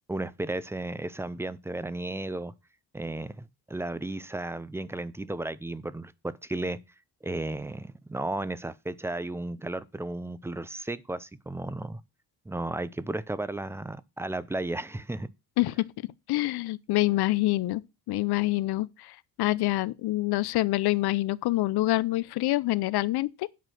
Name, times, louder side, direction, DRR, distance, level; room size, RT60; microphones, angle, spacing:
voice 1, 0.1-2.5 2.9-6.8 7.2-12.0 12.5-15.3, right 2 dB, 5° right, 0.5 m, -34 dB
voice 2, 15.6-23.5, left 18 dB, 80° left, 0.7 m, -26 dB
9.3 x 6.1 x 6.3 m
cardioid pair, 145°, 38 cm